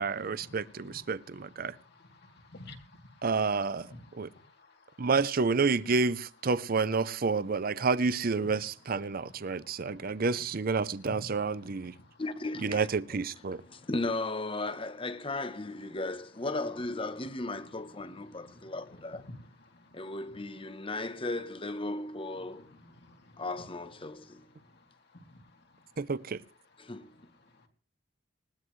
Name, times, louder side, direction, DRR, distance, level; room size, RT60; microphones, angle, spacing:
voice 1, 0.0-1.8 3.2-3.9 4.1-4.3 5.0-11.9 12.6-13.6 26.0-26.4, right 4 dB, 50° right, 0.6 m, -29 dB
voice 2, 2.0-3.2 3.9-5.1 9.4-10.2 13.7-13.8 18.0-18.8 19.3-19.4 19.7-19.9 22.5-23.4 24.0-24.6 25.1-25.4, left 2 dB, 60° left, 2.9 m, -53 dB
voice 3, 12.2-12.9 13.7-19.3 19.9-22.7 23.4-24.4 26.8-27.1, left 2 dB, 30° left, 1.1 m, -36 dB
20.5 x 18.0 x 3.2 m
head